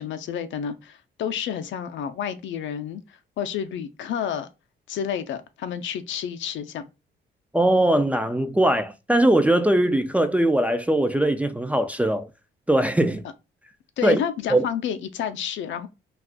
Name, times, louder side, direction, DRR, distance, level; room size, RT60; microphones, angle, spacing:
voice 1, 0.0-4.5 4.9-6.9 14.0-15.9, left 8 dB, 70° left, 0.5 m, -30 dB
voice 2, 7.5-12.3 12.7-13.2 14.0-14.2 14.5-14.7, right 1 dB, 5° right, 0.3 m, -20 dB
2.4 x 2.4 x 3.4 m
cardioid pair, 90°, 20 cm